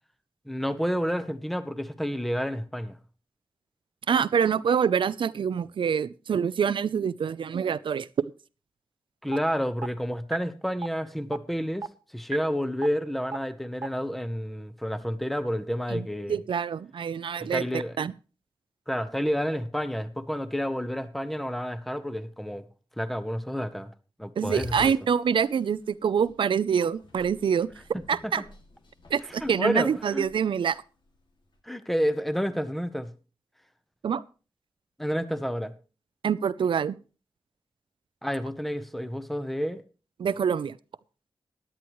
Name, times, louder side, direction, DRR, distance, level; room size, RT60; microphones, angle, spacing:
voice 1, 0.5-3.0 9.2-11.9 12.1-16.4 17.4-18.0 18.9-22.6 23.0-23.9 24.2-24.9 28.2-28.3 29.4-30.3 31.6-33.1 35.0-35.7 38.2-39.8, equal, ahead, 1.0 m, -30 dB
voice 2, 4.1-8.1 15.9-18.1 24.4-27.7 28.1-28.4 29.1-30.8 34.0-34.2 36.2-37.0 40.2-40.8, right 7 dB, 80° right, 0.5 m, -26 dB
sound 1, 9.3-9.4 9.8-9.9 10.3-10.4 10.8-10.9 11.3-11.4 11.8-11.9 12.3-12.4 12.8-12.9 13.3-13.4 13.8-13.9, right 4 dB, 40° right, 0.7 m, -31 dB
sound 2, 24.4-24.9 25.4-25.6 26.2-26.3 26.6-26.7 27.0-30.7, left 3 dB, 65° left, 2.3 m, -45 dB
16.5 x 10.5 x 3.1 m
wide cardioid pair, 85°, 8 cm